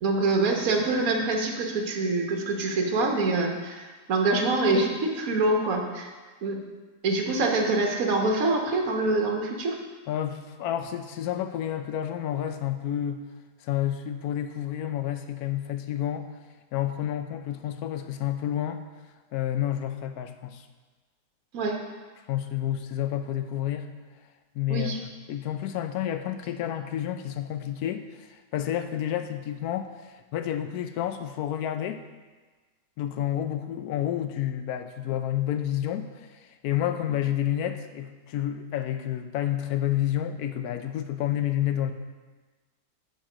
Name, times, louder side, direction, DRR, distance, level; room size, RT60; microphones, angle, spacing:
voice 1, 0.0-6.1 6.4-6.6 7.0-9.8 21.5-21.8 24.7-25.0, right 2 dB, 60° right, 1 dB, 1.5 m, -25 dB
voice 2, 10.1-13.2 13.6-16.3 16.7-18.8 19.3-20.6 22.3-23.9 24.5-32.0 33.0-41.9, left 11 dB, 70° left, 9 dB, 1.1 m, -30 dB
9.0 x 5.3 x 4.9 m, 1.3 s
omnidirectional pair, 1.8 m